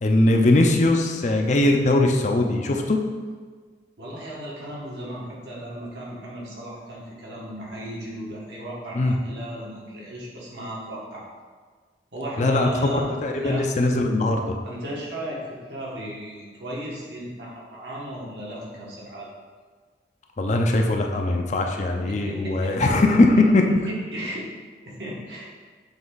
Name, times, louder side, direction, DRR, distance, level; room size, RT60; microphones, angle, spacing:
voice 1, 0.0-3.0 8.9-9.1 12.4-12.9 13.2-14.6 20.4-23.6, left 2 dB, 40° left, 3 dB, 0.5 m, -20 dB
voice 2, 4.0-11.3 12.1-13.1 13.4-13.7 14.6-19.3 22.1-22.9 23.7-24.5 24.8-25.5, right 1 dB, 70° right, -5 dB, 1.6 m, -35 dB
7.2 x 3.4 x 4.0 m, 1.5 s
head